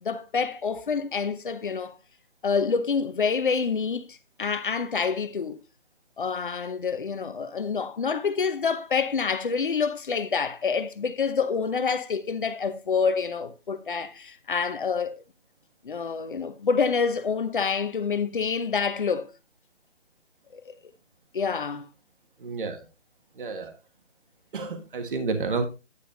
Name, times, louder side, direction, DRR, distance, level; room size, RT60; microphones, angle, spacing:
voice 1, 0.0-2.0 2.4-5.6 6.2-15.2 15.8-19.3 20.5-20.7 21.3-21.9, left 5 dB, 45° left, 0.8 m, -27 dB
voice 2, 22.4-22.9 23.4-23.7 24.5-25.7, right 4 dB, 45° right, 1.5 m, -30 dB
9.9 x 8.2 x 2.6 m
hypercardioid pair, 165°, 36 cm